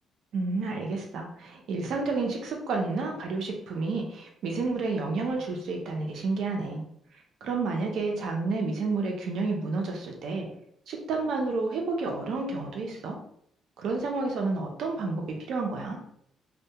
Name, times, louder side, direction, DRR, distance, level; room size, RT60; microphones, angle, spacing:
voice 1, 0.3-6.8 7.4-10.5 10.9-13.2 13.8-16.0, right 3 dB, 75° right, 1 dB, 0.6 m, -30 dB
2.2 x 2.1 x 2.8 m, 0.70 s
cardioid pair, 90°, 0 cm